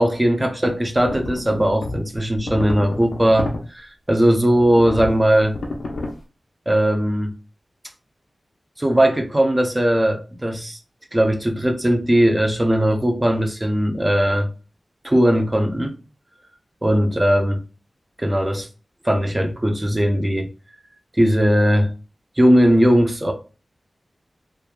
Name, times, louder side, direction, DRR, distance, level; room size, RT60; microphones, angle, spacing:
voice 1, 0.0-5.6 6.7-7.4 8.8-10.8 11.1-14.5 15.0-16.0 16.8-17.6 18.2-18.7 19.0-20.5 21.2-21.9 22.4-23.3, equal, 20° right, 0.5 m, -18 dB
sound 1, 1.0-3.6 4.6-6.1, left 2 dB, 90° left, 0.5 m, -30 dB
3.1 x 2.4 x 2.2 m
wide cardioid pair, 65°, 0 cm